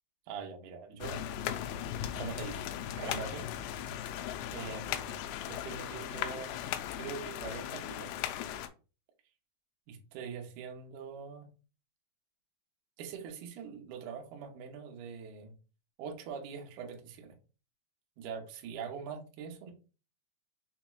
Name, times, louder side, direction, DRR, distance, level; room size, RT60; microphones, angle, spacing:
voice 1, 0.3-1.2 2.2-2.7 3.0-3.5 4.5-8.1 9.9-11.5 13.0-15.5 16.0-17.3 18.2-19.7, right 6 dB, 85° right, 3 dB, 1.7 m, -43 dB
sound 1, 1.0-8.7, left 10 dB, 85° left, 2.7 m, -38 dB
6.2 x 3.0 x 2.3 m, 0.34 s
omnidirectional pair, 4.9 m